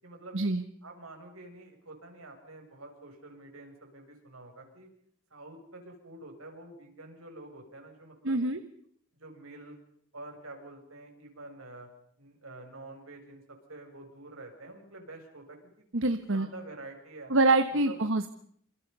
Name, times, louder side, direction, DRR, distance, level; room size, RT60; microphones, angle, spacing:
voice 1, 0.0-0.4 0.8-4.9 5.3-8.4 9.2-9.8 10.1-11.9 12.2-17.3 17.8-18.0, right 2 dB, 85° right, 2 dB, 7.6 m, -48 dB
voice 2, 8.2-8.6 15.9-16.5 17.3-18.3, right 2 dB, 65° right, 10 dB, 1.4 m, -25 dB
29.0 x 28.0 x 5.6 m, 0.64 s
head